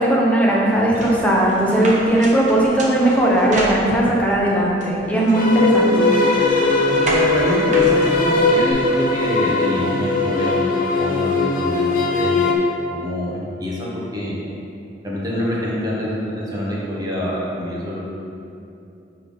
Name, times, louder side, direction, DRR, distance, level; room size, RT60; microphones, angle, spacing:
voice 1, 0.0-6.1, right 1 dB, 10° left, -4 dB, 0.9 m, -17 dB
sound 1, 0.9-4.3 4.8-8.7, right 1 dB, 40° right, 0.9 m, -30 dB
sound 2, 5.3-12.5, left 3 dB, 50° left, 0.7 m, -19 dB
voice 2, 6.9-10.6 11.0-12.6 12.9-14.3 15.0-18.0, left 1 dB, 20° right, -6 dB, 1.2 m, -25 dB
9.0 x 3.5 x 3.9 m, 2.6 s
head